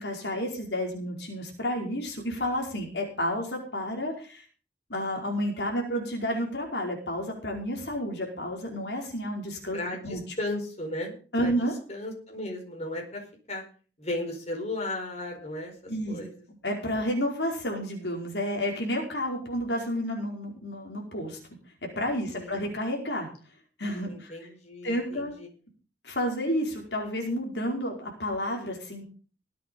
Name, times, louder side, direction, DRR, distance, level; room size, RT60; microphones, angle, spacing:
voice 1, 0.0-4.4 4.9-10.2 11.3-11.7 15.9-16.2 16.6-21.4 22.0-23.3 23.8-24.3 24.8-25.3 26.0-29.0, equal, 75° left, 1 dB, 4.8 m, -30 dB
voice 2, 9.7-11.1 11.4-11.5 11.9-13.6 14.0-16.4 22.3-22.6 24.0-25.5, left 1 dB, 40° left, 1 dB, 4.7 m, -35 dB
20.5 x 8.5 x 5.4 m, 0.38 s
head